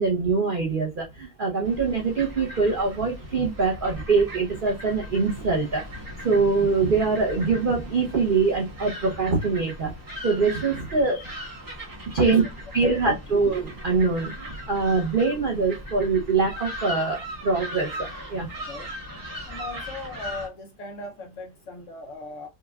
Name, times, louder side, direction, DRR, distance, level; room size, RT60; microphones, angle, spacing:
voice 1, 0.0-9.9 10.2-11.3 12.1-12.4 12.7-18.5, right 4 dB, 80° right, 0.4 m, -24 dB
sound 1, 1.6-20.5, equal, 15° right, 1.0 m, -39 dB
voice 2, 19.5-22.5, left 2 dB, 65° left, 0.8 m, -38 dB
5.0 x 2.2 x 2.2 m
omnidirectional pair, 1.8 m